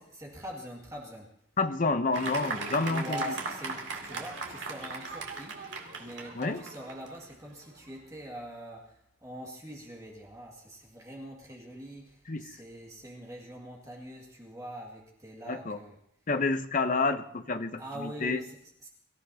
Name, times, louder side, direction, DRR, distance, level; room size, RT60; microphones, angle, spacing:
voice 1, 0.1-1.3 2.9-5.7 6.0-16.0 17.8-18.9, equal, 15° right, -2 dB, 1.9 m, -43 dB
voice 2, 1.6-3.2 6.3-6.6 12.3-12.4 15.5-15.8 16.3-18.4, left 3 dB, 40° left, 9 dB, 0.7 m, -29 dB
Fireworks, 2.1-7.9, right 4 dB, 55° right, 2.4 m, -38 dB
24.0 x 14.0 x 2.8 m, 0.73 s
head